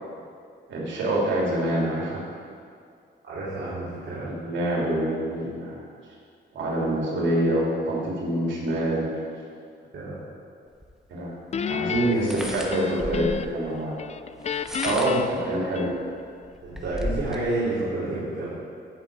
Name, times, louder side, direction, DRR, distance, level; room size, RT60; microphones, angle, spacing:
voice 1, 0.7-2.3 4.2-5.8 6.5-9.1 11.1-11.3 11.6-14.0 14.8-15.9, right 1 dB, 90° right, -4 dB, 3.0 m, -26 dB
voice 2, 3.2-4.3 9.9-10.2 11.9-13.1 13.6-13.9 16.6-18.5, right 2 dB, 70° right, -10 dB, 2.9 m, -30 dB
sound 1, 10.8-10.9 12.1-13.5 14.4-15.3 15.9-16.0 16.4-17.4, equal, 5° right, 1.1 m, -34 dB
Guitar, 11.5-13.7 14.0-16.3, left 7 dB, 35° left, 0.4 m, -31 dB
16.0 x 6.4 x 4.8 m, 2.2 s
cardioid pair, 115°, 19 cm